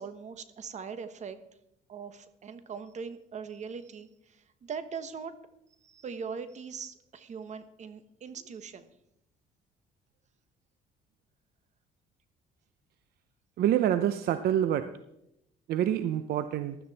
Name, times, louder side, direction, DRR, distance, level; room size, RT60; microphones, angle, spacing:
voice 1, 0.0-1.4 1.9-5.4 5.8-8.9, right 6 dB, 45° right, 11 dB, 1.2 m, -41 dB
voice 2, 13.6-14.9 15.7-16.8, right 10 dB, 65° right, 11 dB, 0.7 m, -26 dB
15.5 x 12.0 x 4.2 m, 0.82 s
cardioid pair, 110°, 17 cm